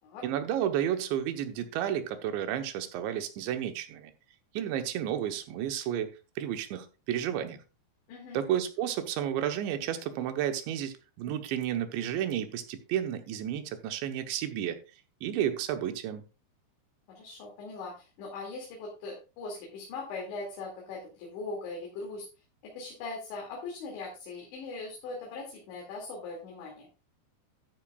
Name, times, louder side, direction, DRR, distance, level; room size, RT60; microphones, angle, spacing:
voice 1, 0.2-4.1 4.5-6.1 6.4-7.6 8.3-14.8 15.2-16.3, right 10 dB, 80° right, 3.3 m, -32 dB
voice 2, 8.1-8.4 17.1-22.3 22.7-26.9, left 3 dB, 80° left, 4.8 m, -40 dB
13.5 x 9.0 x 2.4 m
omnidirectional pair, 5.1 m